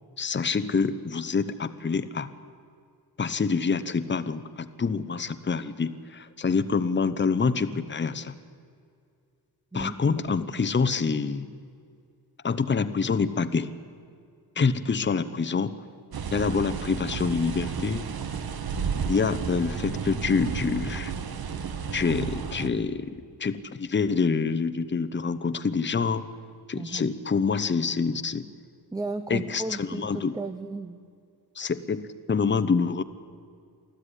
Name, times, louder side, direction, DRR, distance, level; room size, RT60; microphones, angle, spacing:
voice 1, 0.2-2.3 3.2-8.4 9.7-11.5 12.4-13.7 14.6-15.8 16.3-18.1 19.0-21.1 21.9-23.1 23.4-26.2 26.7-28.4 29.3-30.3 31.6-33.0, left 5 dB, 30° left, 11 dB, 0.9 m, -26 dB
voice 2, 9.7-10.2 14.6-14.8 26.7-27.1 28.9-31.0, right 3 dB, 10° right, 10 dB, 0.6 m, -35 dB
sound 1, 16.1-22.7, right 6 dB, 70° right, 1.5 m, -32 dB
24.5 x 14.5 x 10.0 m, 2.3 s
wide cardioid pair, 155°, 38 cm